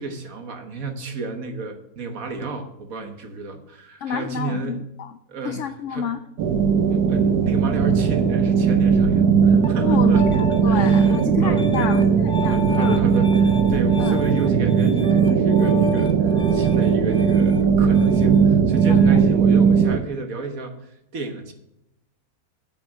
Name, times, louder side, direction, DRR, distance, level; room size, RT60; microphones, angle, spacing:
voice 1, 0.0-4.8 5.3-5.6 5.9-6.1 6.9-11.9 12.4-21.5, right 3 dB, 65° right, 5 dB, 1.7 m, -32 dB
voice 2, 4.0-5.1 5.4-6.2 9.8-13.0 14.0-14.2 18.9-19.2, left 8 dB, 65° left, 10 dB, 0.8 m, -29 dB
sound 1, 6.4-20.0, right 6 dB, 90° right, 1.3 m, -18 dB
Piano, 9.5-19.2, equal, 5° left, 0.6 m, -32 dB
8.8 x 6.2 x 7.4 m, 0.82 s
omnidirectional pair, 1.6 m